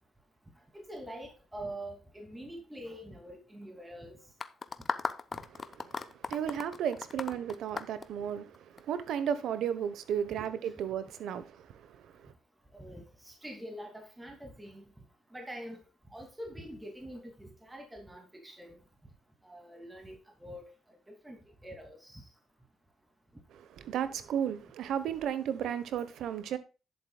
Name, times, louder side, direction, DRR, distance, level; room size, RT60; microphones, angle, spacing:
voice 1, 0.7-4.2 12.7-14.8 15.3-15.8 16.1-18.8 19.4-20.6 21.2-22.2, right 1 dB, 10° right, 2.7 m, -45 dB
sound 1, 4.4-8.8, left 4 dB, 35° left, 0.8 m, -37 dB
voice 2, 5.4-12.3 23.5-26.6, right 9 dB, 75° right, 1.1 m, -34 dB
11.0 x 8.2 x 2.4 m
cardioid pair, 90°, 0 cm